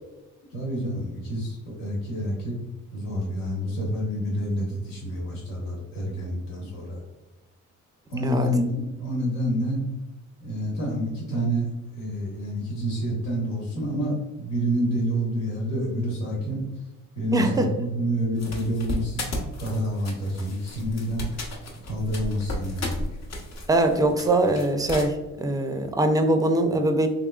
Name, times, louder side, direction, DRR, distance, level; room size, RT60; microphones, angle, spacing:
voice 1, 0.4-2.5 2.9-7.0 8.1-8.7 9.0-9.8 10.4-11.7 11.9-16.7 17.1-19.2 19.6-21.2 21.8-23.0, equal, 90° left, -3 dB, 1.4 m, -28 dB
voice 2, 17.3-17.7 23.7-27.1, right 2 dB, 10° right, 6 dB, 0.4 m, -22 dB
sound 1, 18.4-25.1, left 1 dB, 55° left, 0.9 m, -34 dB
3.6 x 3.0 x 2.3 m, 1.0 s
cardioid pair, 85°, 32 cm